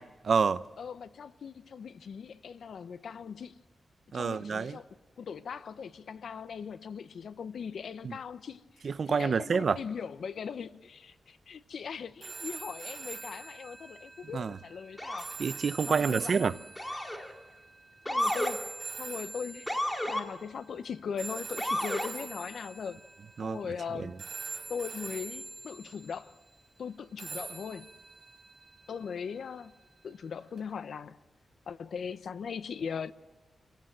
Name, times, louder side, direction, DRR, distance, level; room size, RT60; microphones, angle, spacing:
voice 1, 0.0-0.6 4.1-4.8 8.0-8.2 8.8-9.8 14.3-14.6 15.4-16.6 23.4-23.6 24.0-24.1, right 5 dB, 55° right, 0.7 m, -28 dB
voice 2, 0.8-3.6 4.1-4.9 5.2-15.3 15.9-16.5 18.1-18.7 19.0-23.0 23.4-24.2 24.7-26.4 26.8-27.9 28.9-29.7 30.0-31.2 31.7-33.1, left 6 dB, 75° left, 0.8 m, -40 dB
sound 1, 12.2-20.4 21.2-23.9 24.2-26.3 27.2-29.4 30.6-30.7, right 4 dB, 35° right, 5.7 m, -44 dB
Motor vehicle (road) / Siren, 15.0-15.4 16.8-17.3 18.1-18.5 19.7-20.2 21.6-22.1, left 1 dB, 10° left, 2.2 m, -31 dB
28.0 x 17.5 x 7.5 m
wide cardioid pair, 120°, 0 cm